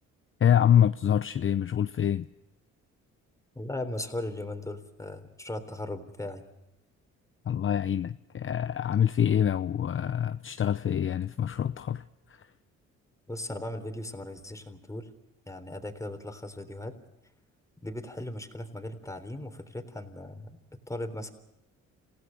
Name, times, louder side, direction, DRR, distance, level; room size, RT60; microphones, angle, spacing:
voice 1, 0.4-2.3 7.4-12.5, left 9 dB, 45° left, 11 dB, 0.8 m, -26 dB
voice 2, 3.6-6.4 13.3-15.1 15.5-16.9 17.8-20.6 20.9-21.3, left 1 dB, 10° left, 7 dB, 3.6 m, -37 dB
28.0 x 17.0 x 6.6 m, 0.91 s
cardioid pair, 90°, 30 cm